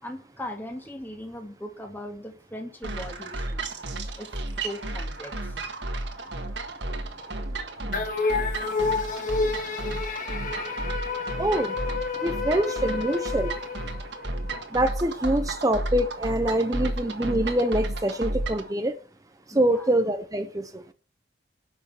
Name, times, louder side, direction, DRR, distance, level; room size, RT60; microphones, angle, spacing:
voice 1, 0.0-3.7 4.2-5.7 12.1-12.2 19.5-19.9, left 1 dB, 10° left, 2.2 m, -39 dB
sound 1, 2.8-18.7, right 2 dB, 65° right, 1.7 m, -33 dB
sound 2, 7.9-14.5, left 4 dB, 45° left, 1.9 m, -29 dB
voice 2, 11.4-11.7 12.2-13.5 14.7-19.0 19.5-20.9, right 1 dB, 20° right, 0.8 m, -25 dB
10.5 x 6.3 x 7.1 m
head